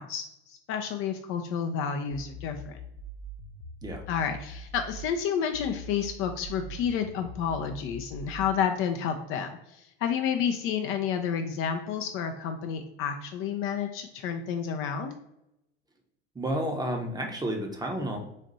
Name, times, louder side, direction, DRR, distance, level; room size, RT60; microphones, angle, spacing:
voice 1, 0.0-2.8 4.1-15.2, left 7 dB, 40° left, 6 dB, 0.5 m, -30 dB
sound 1, 2.3-5.1 5.5-8.5, equal, 80° left, 0.7 m, -43 dB
voice 2, 16.3-18.2, right 1 dB, 10° right, 3 dB, 0.8 m, -31 dB
4.1 x 2.5 x 4.0 m, 0.84 s
figure-of-eight pair, 75°, 32 cm